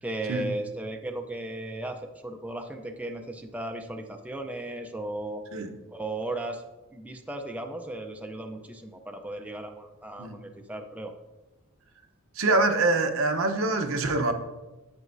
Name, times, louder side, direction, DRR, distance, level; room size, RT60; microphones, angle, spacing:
voice 1, 0.0-5.4 5.9-6.6 6.9-11.1, right 1 dB, 5° right, 4 dB, 0.5 m, -36 dB
voice 2, 12.4-14.3, right 2 dB, 80° right, 5 dB, 0.9 m, -25 dB
9.2 x 8.2 x 2.6 m, 1.1 s
head